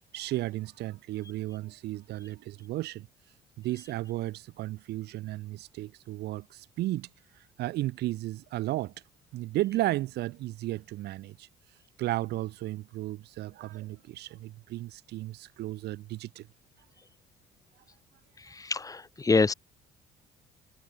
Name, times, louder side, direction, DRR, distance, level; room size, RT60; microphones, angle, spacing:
voice 1, 0.1-3.1 3.6-7.1 7.6-8.9 9.3-11.5 12.0-16.5, right 16 dB, 75° right, 1.9 m, -34 dB
voice 2, 18.6-19.5, left 4 dB, 20° left, 1.6 m, -25 dB
cardioid pair, 110°, 17 cm